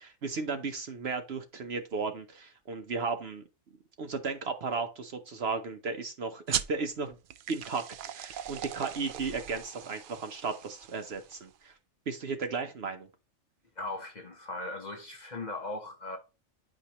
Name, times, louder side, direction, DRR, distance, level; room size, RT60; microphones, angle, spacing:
voice 1, 0.0-3.4 4.0-7.2 7.5-11.7 12.1-13.1, right 4 dB, 55° right, 0.9 m, -35 dB
sound 1, 6.5-11.6, right 9 dB, 75° right, 0.4 m, -39 dB
voice 2, 13.8-16.2, left 2 dB, 35° left, 1.0 m, -38 dB
9.7 x 5.0 x 2.9 m
omnidirectional pair, 1.4 m